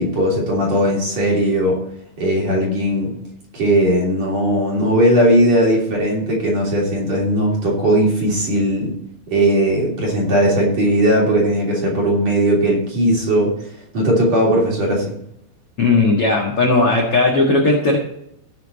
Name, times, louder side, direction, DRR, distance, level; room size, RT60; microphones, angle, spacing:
voice 1, 0.0-1.8 2.2-3.1 3.5-8.9 9.3-13.5 13.9-15.2, right 1 dB, 40° right, -2 dB, 3.7 m, -18 dB
voice 2, 15.8-18.0, left 3 dB, 55° left, -2 dB, 1.6 m, -16 dB
17.0 x 6.2 x 4.1 m, 0.76 s
omnidirectional pair, 5.6 m